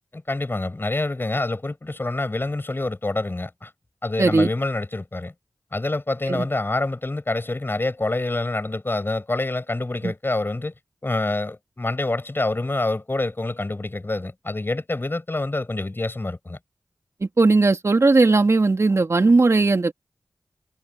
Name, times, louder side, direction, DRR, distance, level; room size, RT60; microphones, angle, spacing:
voice 1, 0.1-3.7 4.0-5.3 5.7-10.7 11.0-16.6, left 2 dB, 35° left, 7.7 m, -26 dB
voice 2, 4.2-4.5 6.3-6.5 10.0-10.1 17.2-19.9, right 3 dB, 55° right, 2.2 m, -18 dB
cardioid pair, 40°, 6 cm